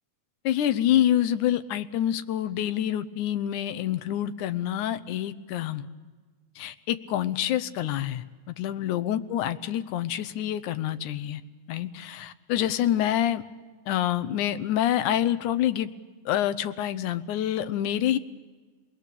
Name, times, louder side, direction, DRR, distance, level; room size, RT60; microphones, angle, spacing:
voice 1, 0.5-5.9 6.6-11.4 11.7-13.4 13.9-15.9 16.3-18.2, left 11 dB, 90° left, 12 dB, 2.3 m, -27 dB
29.5 x 21.0 x 6.8 m, 1.4 s
omnidirectional pair, 3.4 m